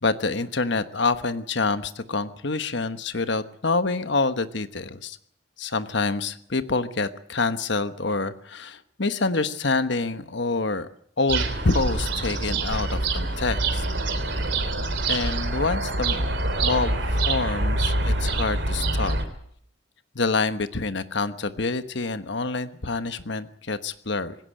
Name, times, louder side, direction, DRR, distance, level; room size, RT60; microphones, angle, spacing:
voice 1, 0.0-5.2 5.6-10.9 11.2-13.8 15.1-19.2 20.1-24.4, left 3 dB, 60° left, 11 dB, 1.2 m, -27 dB
sound 1, 11.3-19.2, right 2 dB, 60° right, 3.3 m, -25 dB
20.0 x 16.5 x 9.1 m, 0.66 s
head